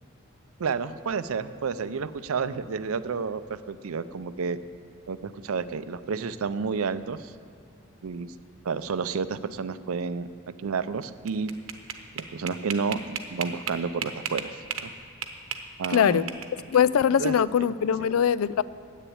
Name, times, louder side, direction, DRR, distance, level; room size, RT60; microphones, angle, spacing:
voice 1, 0.6-4.6 5.1-7.3 8.0-8.3 8.6-10.3 10.6-11.5 12.1-14.9 15.8-16.3 17.2-17.4, right 5 dB, 90° right, 14 dB, 0.5 m, -30 dB
sound 1, 11.0-14.9 15.2-16.7, right 7 dB, 70° right, 0.9 m, -34 dB
voice 2, 15.9-16.3 16.7-18.6, left 8 dB, 90° left, 17 dB, 0.4 m, -22 dB
10.0 x 8.4 x 8.5 m, 2.5 s
head